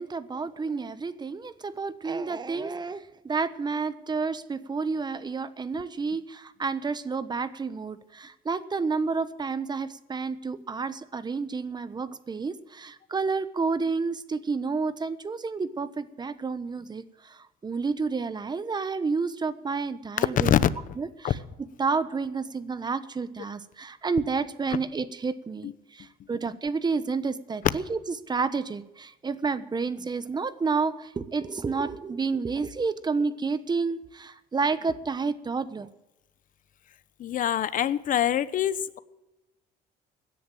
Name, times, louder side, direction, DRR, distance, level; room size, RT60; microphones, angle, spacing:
voice 1, 0.0-20.5 21.0-21.4 21.8-28.0 28.3-35.9, right 4 dB, 25° right, 14 dB, 1.1 m, -30 dB
voice 2, 20.2-20.7 21.2-21.3 25.6-25.7 37.2-39.0, left 10 dB, 55° left, 15 dB, 1.0 m, -24 dB
17.0 x 10.5 x 7.3 m, 0.94 s
cardioid pair, 110°, 17 cm